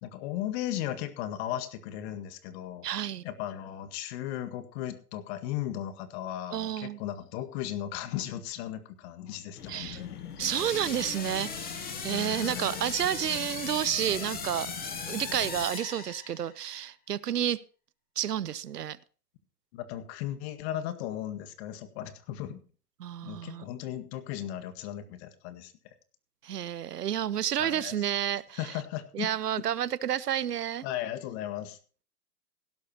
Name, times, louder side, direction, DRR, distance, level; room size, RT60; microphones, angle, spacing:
voice 1, 0.0-2.9 3.2-10.4 10.9-11.0 12.1-13.2 19.7-22.6 23.2-25.7 27.6-28.1 28.6-29.3 30.8-31.8, left 12 dB, 45° left, 10 dB, 1.9 m, -36 dB
voice 2, 2.8-3.2 6.5-7.0 9.7-10.0 10.4-14.7 15.1-17.6 18.2-19.0 23.0-23.6 26.4-28.7 29.1-30.8, right 10 dB, 85° right, 20 dB, 0.9 m, -30 dB
sound 1, 9.6-15.7, left 7 dB, 75° left, 2.2 m, -44 dB
sound 2, 10.4-16.6, left 5 dB, 20° left, 2.7 m, -38 dB
17.0 x 12.0 x 3.0 m, 0.39 s
hypercardioid pair, 125°, 46 cm